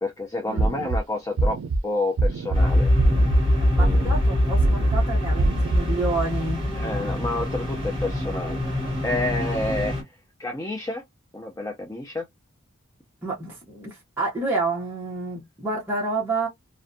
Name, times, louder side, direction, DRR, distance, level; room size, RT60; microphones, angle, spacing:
voice 1, 0.0-2.9 3.8-4.2 6.8-8.6 9.0-10.0 10.4-11.0 11.3-12.3, left 2 dB, 15° left, 0.4 m, -29 dB
sound 1, 0.6-1.0 1.4-1.8 2.2-2.6 3.0-3.4 3.8-4.2 4.6-5.0 5.4-5.8, right 2 dB, 85° right, 0.4 m, -23 dB
sound 2, 2.5-10.0, left 1 dB, 25° right, 1.3 m, -23 dB
voice 2, 3.7-7.3 13.2-16.5, right 3 dB, 10° right, 0.7 m, -29 dB
2.5 x 2.1 x 2.5 m
head